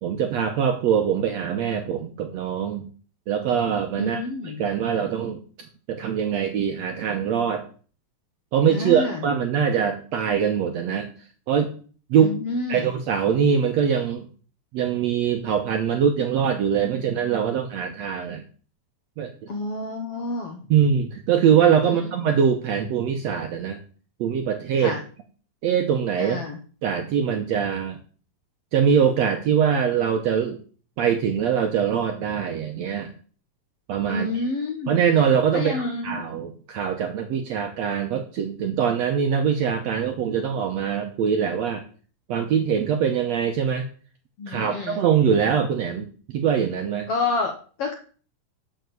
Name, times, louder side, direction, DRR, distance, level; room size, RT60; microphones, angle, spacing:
voice 1, 0.0-2.9 3.3-5.4 5.9-7.6 8.5-11.1 11.5-11.7 12.1-12.3 12.7-14.3 14.7-18.4 19.2-19.5 20.7-23.8 24.2-24.9 25.6-26.4 26.8-28.0 28.7-30.6 31.0-33.1 33.9-34.5 34.9-41.8 42.3-43.8 44.5-47.1, right 7 dB, 70° right, 5 dB, 1.6 m, -23 dB
voice 2, 4.0-4.6 8.7-9.2 12.2-12.9 19.5-20.7 21.8-21.9 24.8-25.0 26.2-26.6 34.1-34.9 35.5-36.2 44.4-45.0 47.1-47.5 47.8-47.9, left 3 dB, 65° left, 3 dB, 1.5 m, -28 dB
7.0 x 6.5 x 7.7 m, 0.41 s
omnidirectional pair, 4.0 m